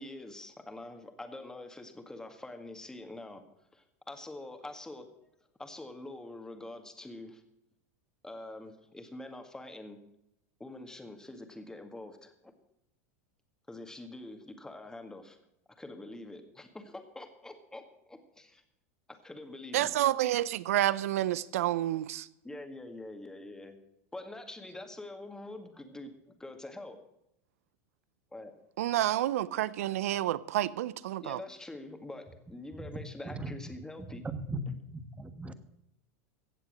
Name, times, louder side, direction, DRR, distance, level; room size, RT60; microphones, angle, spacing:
voice 1, 0.0-3.4 3.7-5.1 5.6-7.4 8.2-10.0 10.6-12.5 13.7-15.4 15.8-18.6 19.2-19.9 22.4-23.8 24.1-26.1 26.4-27.0 28.3-28.5 31.2-34.2, left 2 dB, 10° left, 1.9 m, -45 dB
voice 2, 19.7-22.3 28.8-31.4, right 13 dB, 75° right, 0.6 m, -29 dB
voice 3, 34.9-35.5, right 2 dB, 15° right, 1.2 m, -38 dB
16.5 x 7.4 x 6.4 m
hypercardioid pair, 110°, 8 cm